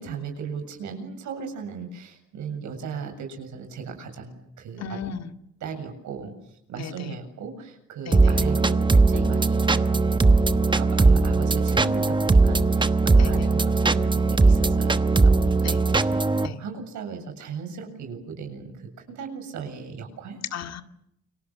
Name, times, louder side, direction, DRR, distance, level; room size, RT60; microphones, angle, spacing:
voice 1, 0.0-4.8 5.6-6.3 6.7-10.1 10.8-20.4, right 5 dB, 80° right, 5 dB, 7.7 m, -37 dB
voice 2, 4.8-5.3 6.8-7.2 8.0-8.4 13.2-13.5 15.6-15.8 16.4-16.6 20.5-20.8, left 7 dB, 65° left, 8 dB, 2.3 m, -35 dB
sound 1, 8.1-16.5, right 3 dB, 15° right, 1.1 m, -19 dB
29.0 x 25.5 x 7.4 m, 0.79 s
cardioid pair, 115°, 29 cm